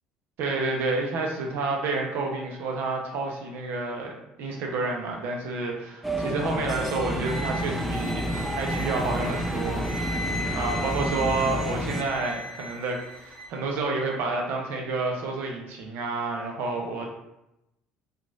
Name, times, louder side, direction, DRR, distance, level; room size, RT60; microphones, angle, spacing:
voice 1, 0.4-4.1 4.4-5.9 6.2-17.0, right 3 dB, 65° right, 0 dB, 0.6 m, -29 dB
sound 1, 6.0-12.0, equal, ahead, 0.4 m, -30 dB
sound 2, 7.2-13.5, equal, 30° left, 1.4 m, -38 dB
3.0 x 2.4 x 2.5 m, 0.89 s
hypercardioid pair, 75°, 4 cm